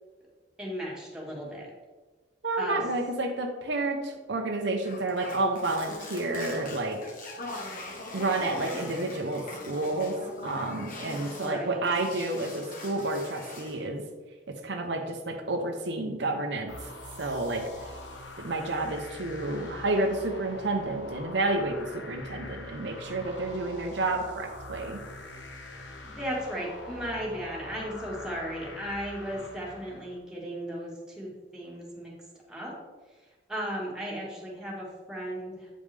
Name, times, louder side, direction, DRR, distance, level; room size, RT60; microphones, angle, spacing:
voice 1, 0.6-1.7 2.6-2.8 11.0-11.8 26.0-32.1 32.5-32.8 33.5-35.8, equal, 5° right, -4 dB, 1.6 m, -36 dB
voice 2, 2.4-7.0 8.1-10.2 10.4-14.0 14.5-16.7 17.2-17.6 18.4-25.0, right 2 dB, 75° right, 3 dB, 0.8 m, -30 dB
sound 1, 4.8-11.6 11.8-13.8, left 2 dB, 50° left, 1.2 m, -41 dB
sound 2, 16.7-30.2, left 2 dB, 75° left, 1.0 m, -44 dB
8.7 x 5.3 x 3.4 m, 1.3 s
head